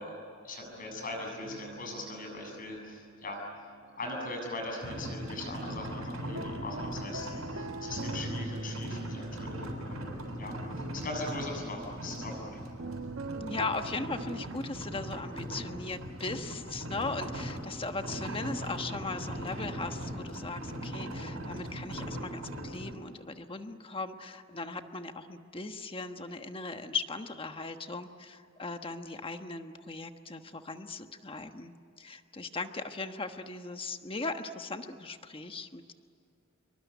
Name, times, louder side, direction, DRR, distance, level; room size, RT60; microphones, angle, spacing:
voice 1, 0.0-3.4 4.0-10.6 10.9-12.6, left 2 dB, 40° left, 2 dB, 7.7 m, -40 dB
sound 1, 0.6-4.7 5.0-14.5, right 2 dB, 65° right, 1.2 m, -44 dB
sound 2, 4.8-23.0, right 1 dB, 90° right, 6.8 m, -39 dB
voice 2, 13.4-35.9, left 3 dB, 25° left, 7 dB, 1.3 m, -38 dB
26.5 x 23.5 x 9.4 m, 2.4 s
head